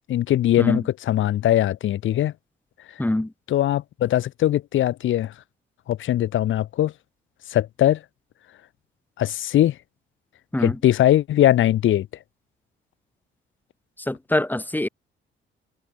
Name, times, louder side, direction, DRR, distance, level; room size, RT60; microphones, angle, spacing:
voice 1, 0.1-2.3 3.5-5.3 5.9-6.9 7.5-8.0 9.2-9.7 10.6-12.1, left 12 dB, 80° left, 6.6 m, -20 dB
voice 2, 3.0-3.3 10.5-10.8 14.0-14.9, left 1 dB, 10° left, 4.2 m, -24 dB
cardioid pair, 90°, 20 cm